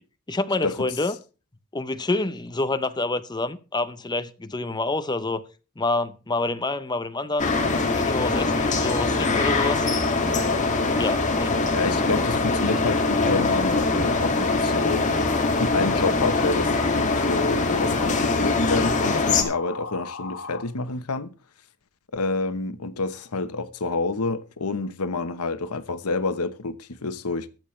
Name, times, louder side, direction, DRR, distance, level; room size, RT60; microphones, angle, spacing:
voice 1, 0.3-1.1 1.7-5.4 5.8-7.5 7.9-9.9 11.0-11.6, left 2 dB, 20° left, 0.7 m, -27 dB
sound 1, 7.4-19.4, left 3 dB, 35° left, 2.1 m, -23 dB
sound 2, 8.3-20.6, left 4 dB, 70° left, 2.3 m, -37 dB
voice 2, 11.7-15.1 15.6-21.3 22.1-27.5, left 3 dB, 90° left, 1.0 m, -28 dB
22.0 x 7.5 x 3.2 m
head